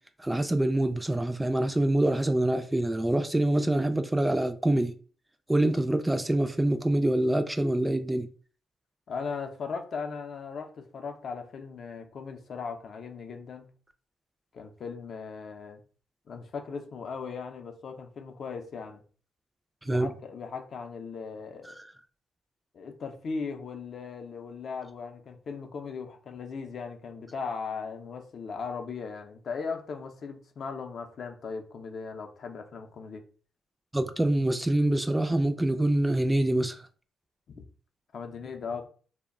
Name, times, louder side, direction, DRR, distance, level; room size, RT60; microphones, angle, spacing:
voice 1, 0.2-5.0 5.5-8.3 19.8-20.1 21.7-21.8 33.9-36.8, right 1 dB, 10° right, 0.3 m, -25 dB
voice 2, 9.1-13.7 14.5-15.8 16.3-19.0 19.8-21.8 22.7-33.2 37.5-37.6 38.1-38.9, left 5 dB, 60° left, 0.5 m, -38 dB
2.2 x 2.1 x 3.5 m
cardioid pair, 70°, 0 cm